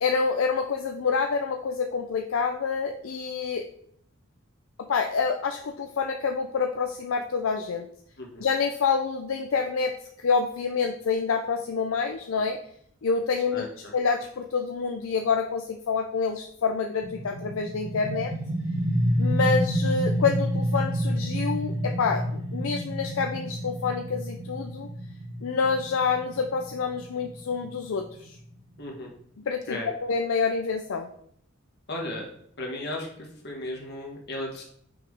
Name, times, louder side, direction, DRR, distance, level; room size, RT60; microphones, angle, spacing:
voice 1, 0.0-3.7 4.8-7.9 8.4-12.6 13.0-13.6 13.9-18.3 19.2-24.9 25.4-28.4 29.5-31.1, left 5 dB, 75° left, 4 dB, 0.5 m, -27 dB
voice 2, 13.5-13.9 28.8-29.1 29.7-29.9 31.9-32.3 32.6-34.6, left 1 dB, 55° left, -1 dB, 1.7 m, -35 dB
sound 1, 17.0-28.5, equal, 85° right, 1.3 m, -29 dB
5.9 x 4.9 x 3.5 m, 0.67 s
head